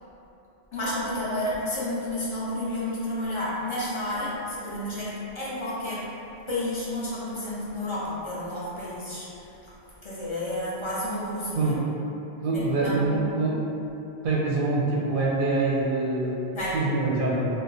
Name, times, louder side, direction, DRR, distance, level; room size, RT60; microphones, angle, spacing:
voice 1, 0.7-6.1 6.5-9.7 10.0-11.7 12.5-13.3 16.5-16.8, left 1 dB, 35° left, -8 dB, 0.5 m, -31 dB
voice 2, 12.4-13.6 14.2-16.4 16.7-17.4, right 3 dB, 60° right, -5 dB, 0.7 m, -25 dB
2.4 x 2.2 x 3.9 m, 2.9 s
omnidirectional pair, 1.1 m